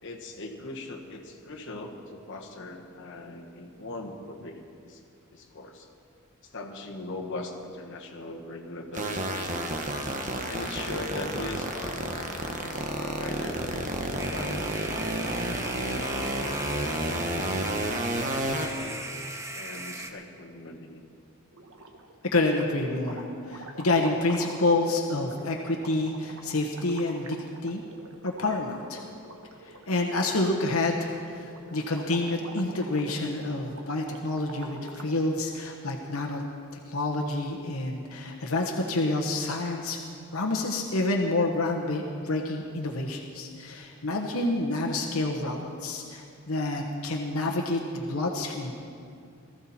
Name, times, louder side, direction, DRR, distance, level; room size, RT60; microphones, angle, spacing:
voice 1, 0.0-5.0 5.3-5.9 6.4-9.9 10.5-13.6 14.3-14.6 15.7-17.3 18.5-19.0 19.5-21.0, left 2 dB, 60° left, 0 dB, 1.5 m, -40 dB
sound 1, 8.9-18.7, right 1 dB, 35° right, 1.3 m, -30 dB
sound 2, 14.2-20.1, right 2 dB, 15° right, 0.9 m, -38 dB
sound 3, 21.5-22.2 22.5-35.2, right 2 dB, 70° right, 1.2 m, -47 dB
voice 2, 22.3-27.8 28.2-29.0 29.6-36.4 36.9-40.0 40.3-48.7, left 2 dB, 80° left, 1 dB, 1.2 m, -28 dB
19.5 x 14.0 x 4.3 m, 2.4 s
head